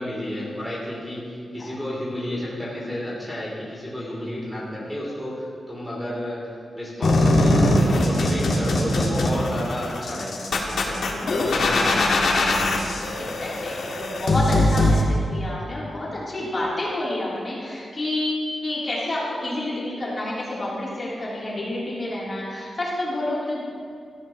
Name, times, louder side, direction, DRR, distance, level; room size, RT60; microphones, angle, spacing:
voice 1, 0.0-6.5 6.7-12.5, left 1 dB, ahead, -7 dB, 3.3 m, -31 dB
sound 1, 7.0-15.0, left 1 dB, 80° left, 1.9 m, -21 dB
voice 2, 11.2-11.5 13.4-23.6, left 1 dB, 30° left, -7 dB, 3.5 m, -29 dB
17.5 x 14.5 x 3.1 m, 2.3 s
wide cardioid pair, 155°, 0 cm